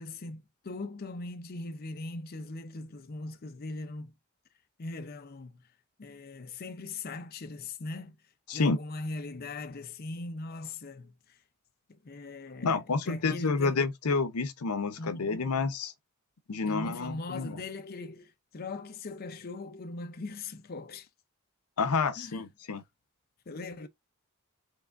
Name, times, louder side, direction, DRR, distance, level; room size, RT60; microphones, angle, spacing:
voice 1, 0.0-4.1 4.8-5.6 6.0-8.2 8.5-11.4 11.9-13.8 15.0-15.5 16.7-21.1 22.2-22.4 23.5-23.9, left 3 dB, 45° left, 0.5 m, -40 dB
voice 2, 12.6-15.9 16.5-17.6 21.8-22.8, left 4 dB, 90° left, 0.7 m, -29 dB
4.7 x 3.3 x 2.4 m
head